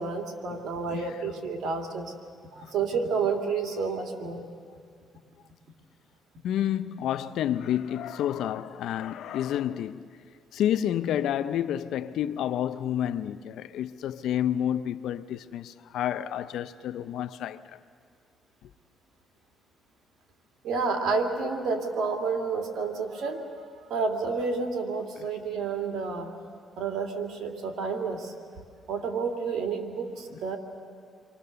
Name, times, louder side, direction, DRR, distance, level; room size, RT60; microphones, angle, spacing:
voice 1, 0.0-2.1 2.5-4.4 20.6-23.5 23.9-26.3 26.8-28.3 28.9-30.6, right 4 dB, 75° right, 2.9 m, -30 dB
voice 2, 0.9-1.2 2.6-2.7 3.7-3.8 6.4-10.2 10.5-17.8 18.6-18.7 25.2-25.3 30.3-30.4, left 10 dB, 80° left, 0.6 m, -30 dB
30.0 x 24.0 x 6.9 m
cardioid pair, 90°, 0 cm